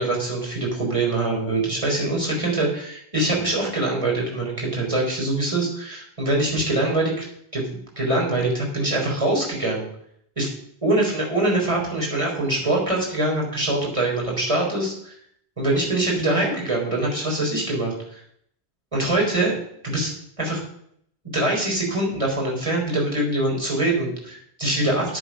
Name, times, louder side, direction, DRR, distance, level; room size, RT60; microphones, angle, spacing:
voice 1, 0.0-7.2 7.5-9.8 10.4-10.5 10.8-15.2 15.6-18.2 18.9-19.5 19.8-20.1 20.4-20.6 21.3-25.2, right 2 dB, 30° right, -2 dB, 4.2 m, -23 dB
9.7 x 9.6 x 5.8 m, 0.68 s
omnidirectional pair, 1.1 m